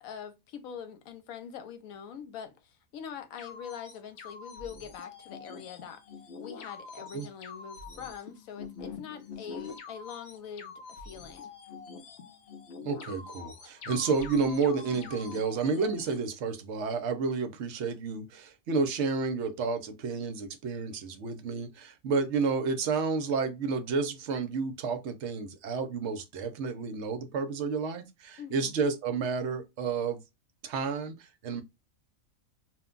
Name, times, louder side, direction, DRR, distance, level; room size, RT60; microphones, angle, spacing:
voice 1, 0.0-6.0 6.4-11.5 28.4-28.7, left 8 dB, 80° left, 1.0 m, -44 dB
sound 1, 3.4-16.2, left 5 dB, 60° left, 0.7 m, -45 dB
voice 2, 12.8-30.2 30.6-31.6, right 4 dB, 60° right, 0.8 m, -31 dB
2.5 x 2.2 x 3.6 m
omnidirectional pair, 1.5 m